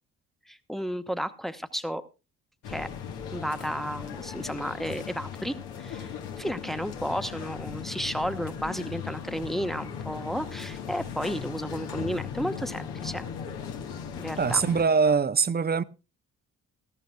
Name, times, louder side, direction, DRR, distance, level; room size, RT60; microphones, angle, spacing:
voice 1, 0.5-2.0 2.7-2.9 3.3-13.2 14.2-14.6, equal, ahead, 1.1 m, -33 dB
sound 1, 2.6-14.8, left 7 dB, 70° left, 1.5 m, -38 dB
voice 2, 14.4-15.8, right 5 dB, 25° right, 0.6 m, -23 dB
19.0 x 13.5 x 2.3 m
hypercardioid pair, 45°, 42 cm